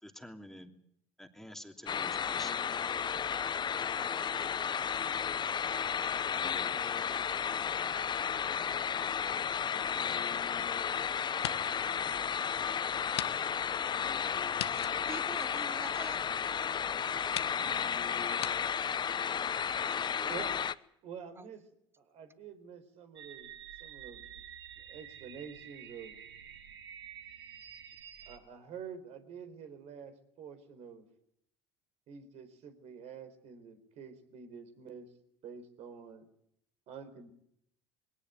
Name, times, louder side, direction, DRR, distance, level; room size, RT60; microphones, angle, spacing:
voice 1, 0.0-0.7 1.2-2.5, left 1 dB, 5° left, 2.9 m, -49 dB
sound 1, 1.9-20.7, left 7 dB, 35° left, 1.0 m, -33 dB
sound 2, 9.9-10.9 11.3-11.9 12.3-12.4 13.1-13.3 13.6-13.7 14.5-16.1 16.8-16.9 17.3-17.6 18.4-18.5, left 12 dB, 85° left, 1.1 m, -40 dB
voice 2, 15.1-16.2 19.9-20.6 21.3-21.5, right 3 dB, 20° right, 1.6 m, -46 dB
voice 3, 21.0-21.6 22.0-23.5 23.8-24.4 24.8-26.2 28.3-31.0 32.1-35.1 35.4-36.3 36.9-37.3, right 7 dB, 60° right, 4.4 m, -47 dB
sound 3, 23.2-28.4, right 9 dB, 85° right, 1.7 m, -49 dB
21.5 x 18.0 x 9.4 m
hypercardioid pair, 70°, 13 cm